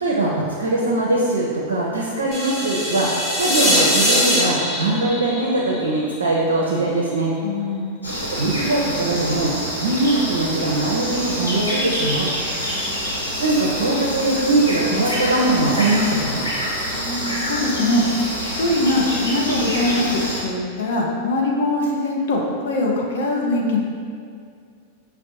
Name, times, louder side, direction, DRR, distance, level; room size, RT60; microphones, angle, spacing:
voice 1, 0.0-3.1 3.3-7.3 8.1-9.5 9.8-12.3 13.4-16.5, right 2 dB, 70° right, -4 dB, 0.5 m, -21 dB
sound 1, 2.3-6.4, equal, ahead, 1.0 m, -21 dB
voice 2, 7.4-8.1 16.9-18.0 18.6-23.8, left 2 dB, 60° left, -2 dB, 0.5 m, -22 dB
sound 2, 8.0-20.4, equal, 90° left, 0.9 m, -26 dB
5.9 x 2.0 x 2.8 m, 2.2 s
figure-of-eight pair, 90°, 0 cm